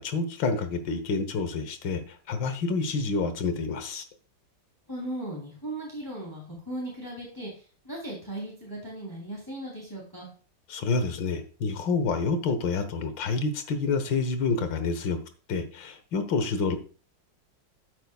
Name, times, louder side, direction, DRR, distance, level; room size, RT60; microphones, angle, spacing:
voice 1, 0.0-4.0 10.7-15.2 15.5-16.8, left 4 dB, 80° left, 9 dB, 1.9 m, -28 dB
voice 2, 4.9-7.5 7.8-10.3, right 1 dB, 10° left, -3 dB, 3.2 m, -37 dB
12.5 x 8.5 x 2.3 m, 0.37 s
omnidirectional pair, 2.0 m